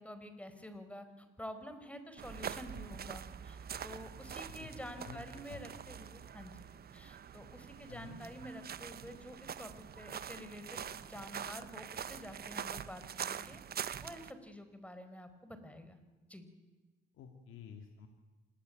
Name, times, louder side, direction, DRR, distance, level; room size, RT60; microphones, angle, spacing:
voice 1, 0.0-13.6 14.0-16.0 16.3-16.5, equal, 5° left, 10 dB, 4.5 m, -49 dB
sound 1, 2.2-14.3, right 8 dB, 50° right, 1.2 m, -44 dB
voice 2, 7.9-8.2 17.1-18.1, left 8 dB, 85° left, 5 dB, 2.4 m, -50 dB
27.0 x 20.5 x 9.4 m, 1.3 s
cardioid pair, 90°, 20 cm